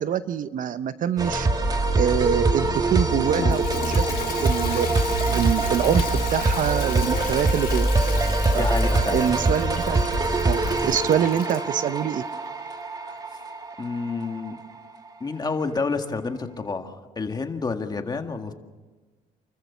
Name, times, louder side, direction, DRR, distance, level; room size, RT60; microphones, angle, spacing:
voice 1, 0.0-1.5 2.0-4.0 4.4-4.9 5.3-6.0 6.3-7.9 8.5-8.6 9.1-10.0 10.4-12.2, right 9 dB, 55° right, 13 dB, 0.8 m, -25 dB
sound 1, 1.2-14.6, right 2 dB, 25° right, 1.7 m, -24 dB
Toilet flush, 3.1-11.7, left 9 dB, 60° left, 1.8 m, -35 dB
voice 2, 8.5-9.2 13.0-13.2 13.8-14.6 15.2-18.5, left 4 dB, 25° left, 6 dB, 1.8 m, -29 dB
29.0 x 14.5 x 7.1 m, 1.3 s
cardioid pair, 110°, 17 cm